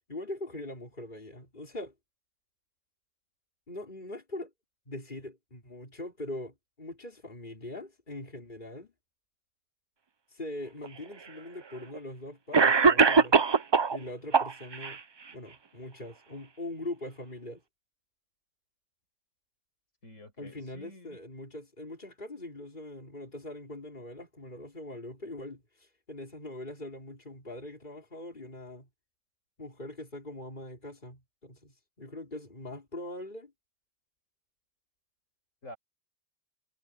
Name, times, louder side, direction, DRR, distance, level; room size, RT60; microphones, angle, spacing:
voice 1, 0.1-1.9 3.7-4.5 4.9-8.9 10.3-13.4 13.9-15.0 15.3-17.6 20.4-28.9 29.6-33.5, left 1 dB, 40° left, 4.9 m, -42 dB
Cough, 10.8-10.9 11.9-12.0 12.5-14.0 14.3-15.0, right 5 dB, 45° right, 0.3 m, -21 dB
voice 2, 20.0-21.2 35.6-35.8, left 1 dB, 90° left, 8.2 m, -48 dB
omnidirectional pair, 1.3 m